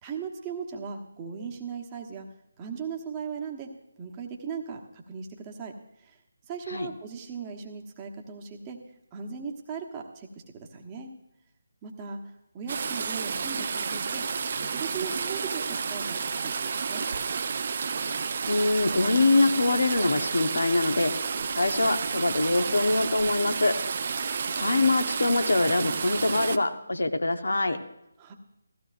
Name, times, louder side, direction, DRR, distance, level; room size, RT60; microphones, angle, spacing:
voice 1, 0.0-2.3 2.6-3.7 4.0-6.2 6.5-8.8 9.1-11.1 11.8-14.3 14.6-17.1 28.2-28.3, right 6 dB, 20° right, 1 dB, 1.2 m, -38 dB
sound 1, 12.7-26.6, right 5 dB, 40° right, 0.5 m, -31 dB
voice 2, 18.5-21.1 21.6-23.7 24.6-27.8, left 2 dB, 70° left, 7 dB, 1.0 m, -24 dB
16.0 x 15.0 x 2.6 m, 0.82 s
figure-of-eight pair, 155°, 0 cm